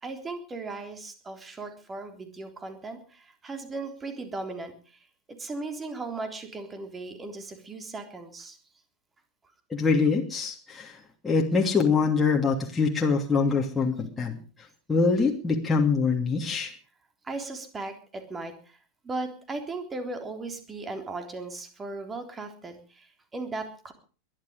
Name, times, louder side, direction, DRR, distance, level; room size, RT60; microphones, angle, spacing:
voice 1, 0.0-5.0 5.3-8.6 17.2-18.8 19.0-23.9, right 3 dB, 15° right, 6 dB, 3.5 m, -37 dB
voice 2, 9.7-14.4 14.9-16.7, left 4 dB, 15° left, -1 dB, 2.8 m, -24 dB
22.0 x 12.0 x 5.2 m, 0.39 s
figure-of-eight pair, 90°, 0 cm